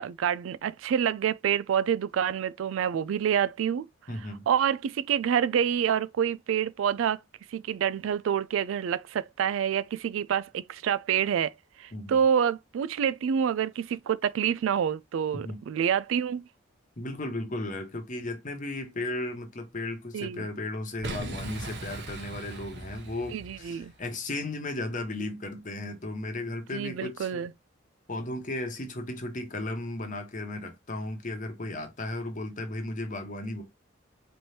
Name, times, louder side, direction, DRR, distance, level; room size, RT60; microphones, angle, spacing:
voice 1, 0.0-3.9 4.5-7.2 7.5-16.4 20.1-20.5 23.3-23.9 26.7-27.5, right 8 dB, 75° right, 0.3 m, -27 dB
voice 2, 4.1-4.5 11.9-12.2 15.4-15.6 17.0-27.4 28.1-33.6, left 2 dB, 40° left, 1.0 m, -35 dB
Boom, 21.0-24.0, right 2 dB, 60° right, 1.0 m, -39 dB
4.4 x 3.3 x 2.7 m
head